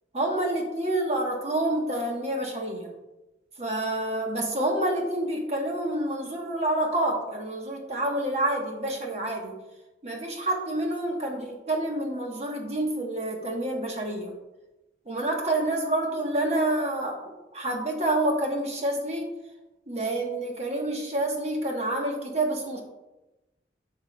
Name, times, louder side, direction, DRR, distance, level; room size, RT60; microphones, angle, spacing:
voice 1, 0.1-2.9 3.6-9.6 10.0-14.3 15.1-17.2 17.5-19.3 19.9-22.8, right 1 dB, 40° right, 1 dB, 1.1 m, -28 dB
8.7 x 5.7 x 2.2 m, 1.0 s
head